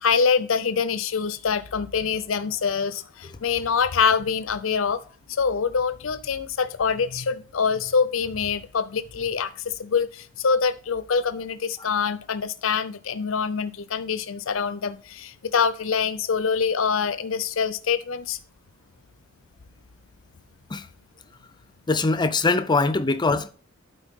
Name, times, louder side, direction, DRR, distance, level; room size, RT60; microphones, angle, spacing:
voice 1, 0.0-5.0 5.3-18.4, left 6 dB, 75° left, 0.6 m, -25 dB
voice 2, 21.9-23.5, left 3 dB, 20° left, 0.5 m, -22 dB
11.5 x 4.5 x 3.6 m
head